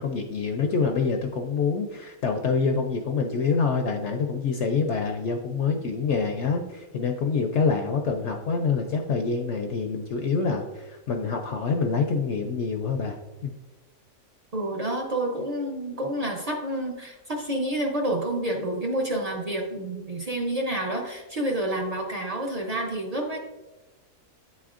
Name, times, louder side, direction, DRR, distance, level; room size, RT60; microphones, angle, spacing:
voice 1, 0.0-13.2 13.4-13.6, left 5 dB, 65° left, 4 dB, 0.7 m, -26 dB
voice 2, 14.5-23.4, right 1 dB, 45° right, 0 dB, 0.5 m, -29 dB
9.3 x 4.3 x 2.4 m, 1.1 s
omnidirectional pair, 1.6 m